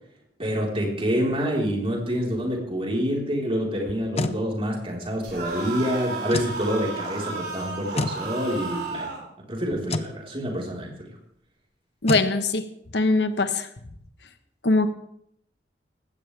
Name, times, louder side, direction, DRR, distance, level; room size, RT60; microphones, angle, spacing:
voice 1, 0.4-9.1 9.5-11.1, equal, 35° right, -1 dB, 4.4 m, -27 dB
sound 1, 3.9-4.4 6.3-6.6 8.0-8.2 9.9-10.1 12.1-12.3, left 2 dB, 35° left, 0.8 m, -27 dB
sound 2, 5.2-9.2, right 4 dB, 65° right, 5.5 m, -33 dB
voice 2, 12.0-12.6 12.9-13.7 14.6-14.9, left 3 dB, 70° left, 8 dB, 1.3 m, -21 dB
19.5 x 16.5 x 3.5 m, 0.70 s
head